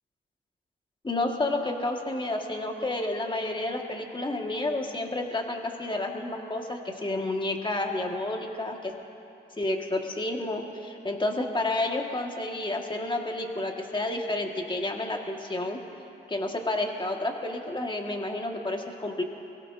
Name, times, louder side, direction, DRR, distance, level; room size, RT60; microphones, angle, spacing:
voice 1, 1.0-8.9 9.6-15.8 16.3-19.2, left 2 dB, 25° left, 2 dB, 1.8 m, -30 dB
23.0 x 16.5 x 2.7 m, 2.8 s
supercardioid pair, 55°, 19 cm